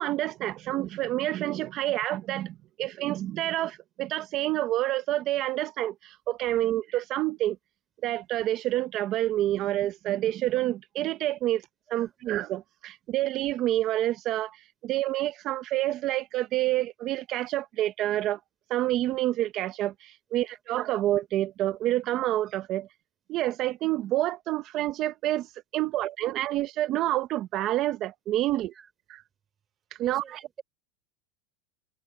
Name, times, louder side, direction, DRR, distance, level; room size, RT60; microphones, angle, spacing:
voice 1, 0.0-5.9 6.3-7.6 8.0-11.6 11.9-14.5 14.8-18.4 18.7-19.9 20.3-22.9 23.3-25.5 25.7-28.7 30.0-30.2, right 14 dB, 35° right, 1.0 m, -28 dB
voice 2, 30.0-30.6, right 7 dB, 20° right, 4.6 m, -48 dB
supercardioid pair, 155°, 0 cm